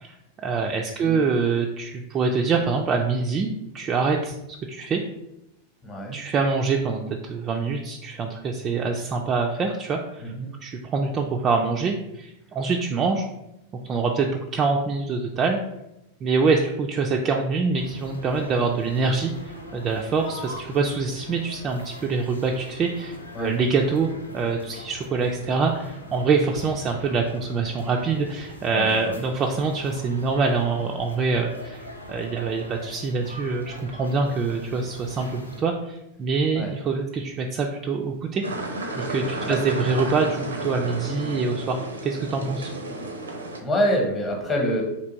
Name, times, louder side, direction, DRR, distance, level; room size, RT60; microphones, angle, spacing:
voice 1, 0.0-3.5 3.7-4.4 4.7-5.0 6.1-10.3 10.6-13.2 13.8-15.6 16.2-24.1 24.3-38.4 38.9-42.7, right 4 dB, 25° right, 1 dB, 0.3 m, -25 dB
voice 2, 5.8-6.2 10.2-10.5 23.3-23.6 28.7-29.1 36.5-36.7 39.5-39.6 43.6-44.8, equal, 25° left, 1 dB, 0.9 m, -26 dB
sound 1, 17.7-35.6, equal, 85° left, 0.5 m, -42 dB
sound 2, 38.4-43.6, right 2 dB, 75° right, 0.5 m, -32 dB
3.3 x 2.7 x 3.9 m, 0.89 s
figure-of-eight pair, 90°, 0 cm